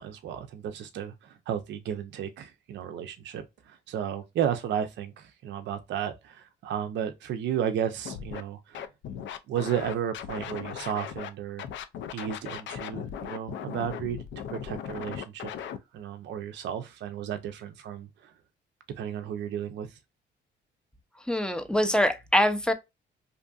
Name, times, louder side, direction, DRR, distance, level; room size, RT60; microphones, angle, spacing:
voice 1, 0.0-8.9 9.5-11.6 12.1-14.2 14.5-18.3 19.0-20.0, right 9 dB, 65° right, 0.4 m, -33 dB
Scratching (performance technique), 8.0-8.4 8.7-11.3 11.6-15.8, left 8 dB, 70° left, 0.4 m, -37 dB
voice 2, 21.3-22.7, left 1 dB, 5° left, 0.4 m, -24 dB
2.6 x 2.5 x 2.3 m
cardioid pair, 90°, 20 cm